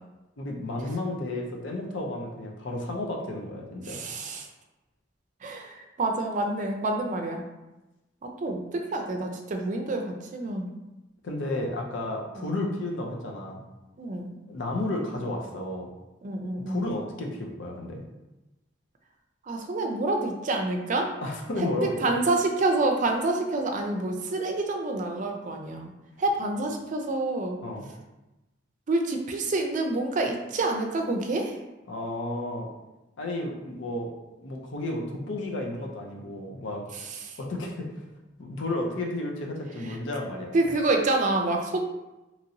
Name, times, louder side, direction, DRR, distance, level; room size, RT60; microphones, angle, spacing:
voice 1, 0.4-4.0 11.2-13.6 14.5-15.9 16.7-18.0 21.2-22.1 27.6-27.9 31.9-32.7 33.2-34.1 34.4-36.8 37.4-37.9 38.4-40.6, left 2 dB, 75° left, 1 dB, 0.6 m, -32 dB
voice 2, 3.8-4.5 5.4-7.4 8.2-10.7 14.0-14.3 16.2-16.9 19.5-21.1 21.8-25.9 26.2-27.6 28.9-31.6 36.9-37.4 40.5-41.8, right 2 dB, 40° right, 3 dB, 0.4 m, -27 dB
2.9 x 2.8 x 2.6 m, 1.0 s
head